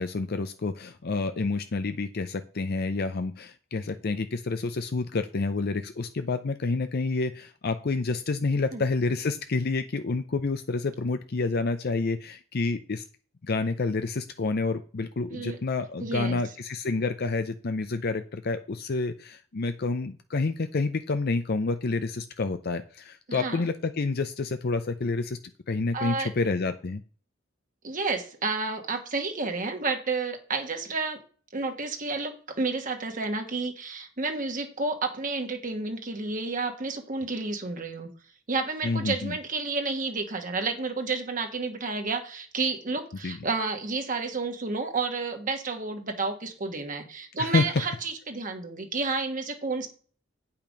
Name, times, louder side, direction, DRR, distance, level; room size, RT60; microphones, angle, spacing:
voice 1, 0.0-13.0 13.4-25.4 25.7-27.0 38.8-39.4 43.2-43.4 47.4-47.9, left 3 dB, 50° left, 9 dB, 0.6 m, -28 dB
voice 2, 16.0-16.4 23.3-23.6 25.9-26.3 27.8-31.2 31.5-38.1 38.5-49.9, right 3 dB, 40° right, 4 dB, 1.4 m, -31 dB
8.7 x 5.7 x 5.2 m, 0.41 s
head